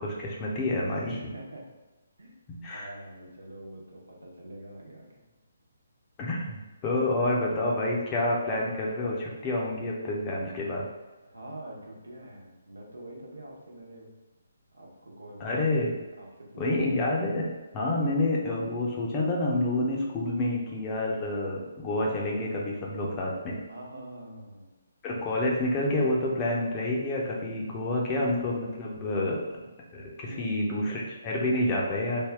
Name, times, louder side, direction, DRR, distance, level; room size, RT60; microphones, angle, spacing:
voice 1, 0.0-1.2 2.5-2.9 6.2-10.9 15.4-16.0 16.6-23.6 25.0-29.6 29.9-32.3, left 1 dB, 25° left, -2 dB, 0.7 m, -28 dB
voice 2, 1.1-1.6 2.2-2.3 2.7-5.2 11.2-14.1 14.7-15.6 16.2-16.9 23.7-24.7 30.3-30.6, right 1 dB, 90° right, -2 dB, 1.0 m, -45 dB
3.5 x 2.3 x 3.5 m, 1.1 s
figure-of-eight pair, 145°, 0 cm